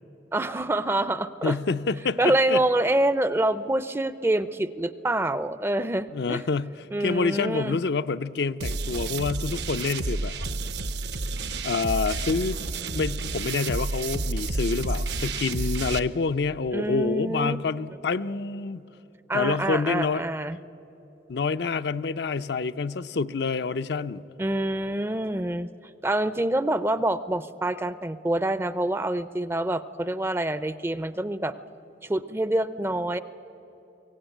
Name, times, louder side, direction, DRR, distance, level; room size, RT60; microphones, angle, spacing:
voice 1, 0.3-1.6 2.2-6.4 6.9-7.8 16.7-17.6 19.3-20.6 24.4-25.7 26.0-31.5 32.0-33.2, right 1 dB, 15° right, 14 dB, 0.4 m, -26 dB
voice 2, 1.4-2.6 6.1-10.3 11.6-12.6 12.9-18.8 19.3-20.2 21.3-24.2, left 4 dB, 65° left, 11 dB, 0.5 m, -27 dB
sound 1, 8.6-16.0, right 3 dB, 65° right, 0.8 m, -30 dB
23.0 x 17.0 x 9.0 m, 3.0 s
head